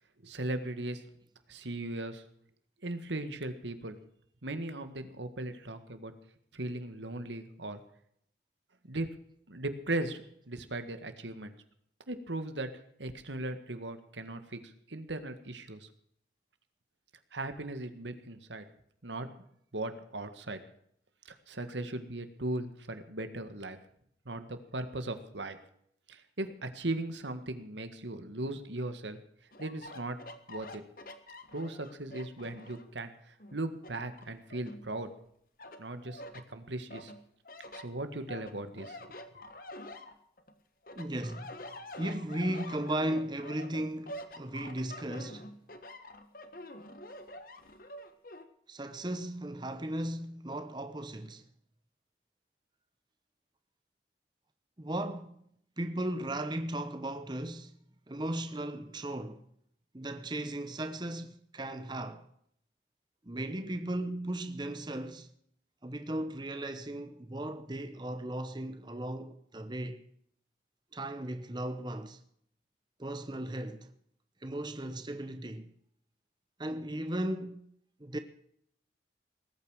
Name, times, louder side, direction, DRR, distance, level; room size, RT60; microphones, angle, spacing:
voice 1, 0.2-1.0 1.5-2.2 2.8-4.0 4.4-6.1 6.5-7.8 8.8-9.1 9.5-11.5 12.1-12.7 13.0-15.9 17.3-18.7 19.0-19.3 19.7-20.6 21.3-23.8 24.3-25.6 26.1-29.2 29.6-30.2 30.5-30.8 31.5-35.1 35.8-36.2 36.5-37.1 37.7-39.1, right 2 dB, 80° right, 1.8 m, -38 dB
sound 1, 29.5-33.0 33.4-35.2 35.6-36.4 36.9-40.5 40.8-48.4, left 1 dB, 50° left, 1.5 m, -47 dB
voice 2, 41.0-41.6 42.0-45.5 48.7-51.5 54.8-55.3 55.8-57.8 58.1-59.4 59.9-62.3 63.2-65.3 65.8-70.0 70.9-72.2 73.0-73.9 74.4-75.7 76.6-77.7 78.0-78.2, right 1 dB, 25° right, 1.0 m, -36 dB
19.5 x 9.2 x 6.4 m
head